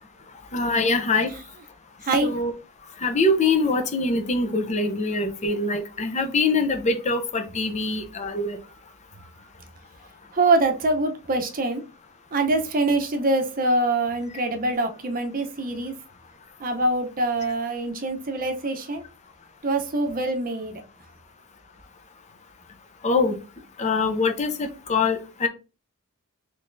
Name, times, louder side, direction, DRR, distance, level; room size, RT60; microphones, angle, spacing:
voice 1, 0.5-1.3 2.2-2.5 3.0-8.6 23.0-23.4 23.8-25.5, left 3 dB, 35° left, 7 dB, 0.6 m, -23 dB
voice 2, 10.3-11.8 12.3-15.9 16.6-19.0 19.6-20.8, right 2 dB, 40° right, 5 dB, 0.7 m, -24 dB
3.9 x 3.2 x 2.6 m, 0.32 s
head